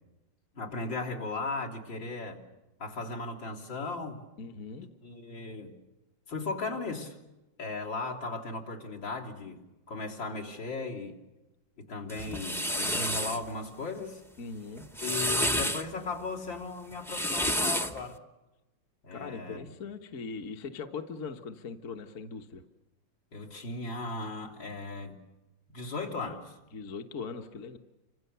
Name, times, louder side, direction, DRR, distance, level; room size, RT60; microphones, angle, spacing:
voice 1, 0.5-2.4 2.8-4.3 5.0-5.7 6.3-7.2 7.6-9.6 9.9-11.2 11.8-14.2 15.0-18.2 19.0-19.6 23.3-25.2 25.7-26.6, left 3 dB, 75° left, -2 dB, 4.1 m, -37 dB
voice 2, 4.4-4.9 14.4-14.9 19.1-22.6 26.7-27.8, left 5 dB, 45° left, 5 dB, 1.5 m, -40 dB
sound 1, 12.1-13.4 14.8-15.8 16.9-18.0, equal, ahead, 0.5 m, -30 dB
29.5 x 26.0 x 6.8 m, 1.0 s
omnidirectional pair, 2.1 m